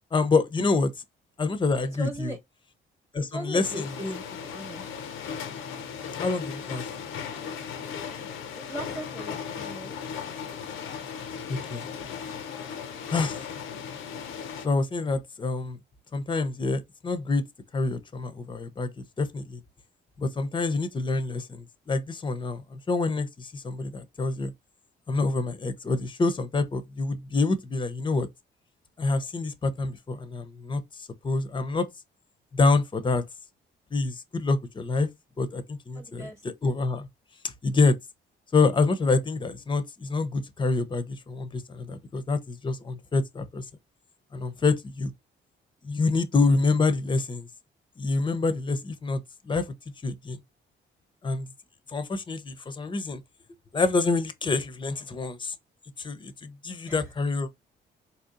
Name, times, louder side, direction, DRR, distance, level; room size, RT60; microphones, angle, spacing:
voice 1, 0.1-0.9 1.4-2.3 3.1-3.9 6.2-6.8 11.5-11.9 13.1-13.4 14.6-15.8 16.1-17.4 17.7-18.9 19.2-19.6 20.2-24.5 25.1-28.3 29.0-30.8 31.2-31.9 32.5-33.2 33.9-35.1 35.4-36.3 36.6-37.1 37.6-38.0 38.5-43.6 44.3-45.1 45.8-47.5 48.0-49.2 49.5-49.7 50.0-50.4 51.2-51.5 51.9-53.2 53.7-55.5 56.0-57.5, left 3 dB, 25° left, 0.6 m, -26 dB
voice 2, 1.9-2.4 3.2-4.9 8.6-10.0 35.9-36.4 56.9-57.1, right 1 dB, 10° right, 1.0 m, -38 dB
sound 1, 3.6-14.7, left 7 dB, 85° left, 0.6 m, -37 dB
4.2 x 2.7 x 2.5 m
cardioid pair, 90°, 20 cm